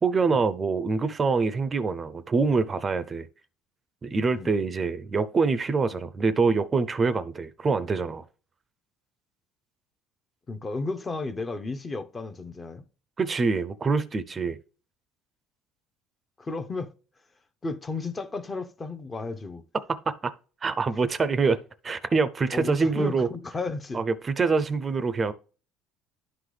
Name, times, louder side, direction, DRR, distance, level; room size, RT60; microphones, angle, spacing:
voice 1, 0.0-3.3 4.0-8.2 13.2-14.6 19.9-20.3 20.6-21.6 21.8-23.3 23.9-25.3, right 4 dB, 25° right, 0.5 m, -25 dB
voice 2, 10.5-12.8 16.4-16.9 17.6-19.6 22.5-24.0, left 3 dB, 20° left, 0.7 m, -33 dB
11.5 x 3.9 x 3.2 m
cardioid pair, 120°, 0 cm